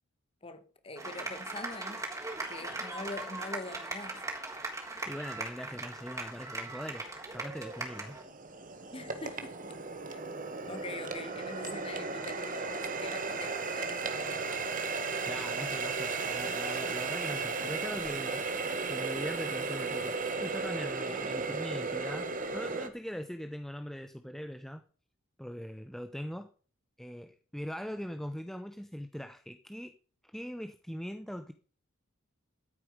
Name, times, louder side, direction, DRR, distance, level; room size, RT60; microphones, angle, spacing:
voice 1, 0.4-2.0 2.5-4.2 8.9-9.6 10.1-10.2 10.7-14.7, left 2 dB, 25° left, 1.9 m, -44 dB
sound 1, 1.0-8.2, right 2 dB, 15° right, 3.7 m, -39 dB
voice 2, 5.0-8.2 15.3-18.4 18.9-24.8 25.4-26.5 27.0-30.0 30.3-31.5, equal, ahead, 0.8 m, -41 dB
Water tap faucet, 6.4-6.5 7.1-22.9, right 4 dB, 40° right, 1.8 m, -35 dB
13.5 x 8.9 x 5.1 m
head